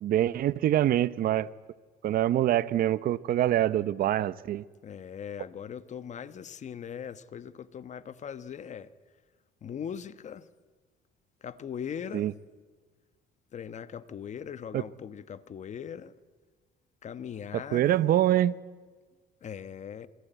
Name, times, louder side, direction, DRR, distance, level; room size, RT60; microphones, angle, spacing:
voice 1, 0.0-1.5 2.0-4.6 12.1-12.3 14.7-14.8 17.5-18.5, right 12 dB, 60° right, 17 dB, 0.8 m, -25 dB
voice 2, 4.8-8.9 9.6-10.5 11.4-12.3 13.5-16.2 17.0-18.1 19.4-20.1, left 8 dB, 45° left, 14 dB, 1.2 m, -40 dB
27.5 x 22.0 x 9.2 m, 1.4 s
cardioid pair, 110°, 17 cm